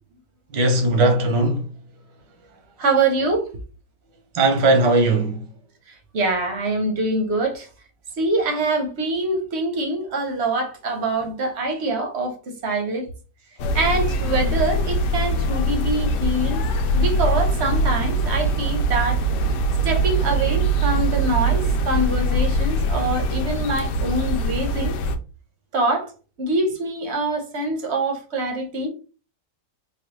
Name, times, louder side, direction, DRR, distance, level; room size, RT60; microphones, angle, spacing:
voice 1, 0.5-1.7 4.3-5.4, right 2 dB, 85° right, 1.6 m, -18 dB
voice 2, 2.8-3.5 5.9-7.7 8.2-13.1 13.7-16.6 16.9-19.5 19.8-25.0 25.7-26.1 26.4-28.9, right 2 dB, 50° right, 0.9 m, -24 dB
sound 1, 13.6-25.2, right 1 dB, 80° left, 1.2 m, -22 dB
4.1 x 2.3 x 3.0 m
omnidirectional pair, 1.9 m